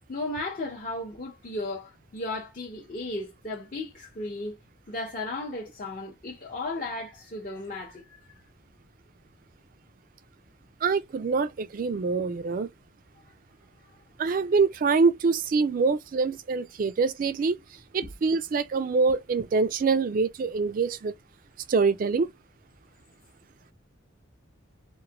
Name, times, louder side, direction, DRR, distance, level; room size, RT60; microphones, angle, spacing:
voice 1, 0.1-4.6 4.9-8.2, left 2 dB, 40° left, 0.6 m, -35 dB
voice 2, 10.8-12.7 14.2-17.6 17.9-21.1 21.7-22.3, right 4 dB, 45° right, 0.3 m, -25 dB
3.0 x 2.2 x 2.7 m
head